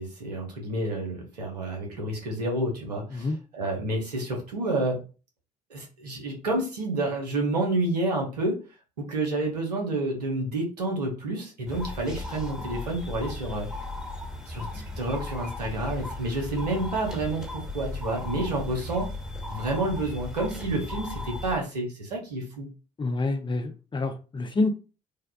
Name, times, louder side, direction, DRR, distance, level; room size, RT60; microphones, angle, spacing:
voice 1, 0.0-5.0 5.7-8.6 9.0-13.7 14.5-19.1 19.5-22.7, right 2 dB, 90° right, 0 dB, 0.8 m, -29 dB
sound 1, 11.7-21.6, left 2 dB, 5° right, 1.2 m, -36 dB
voice 2, 23.0-24.7, left 3 dB, 25° left, 7 dB, 0.5 m, -27 dB
3.4 x 2.3 x 2.2 m, 0.34 s
hypercardioid pair, 55°, 20 cm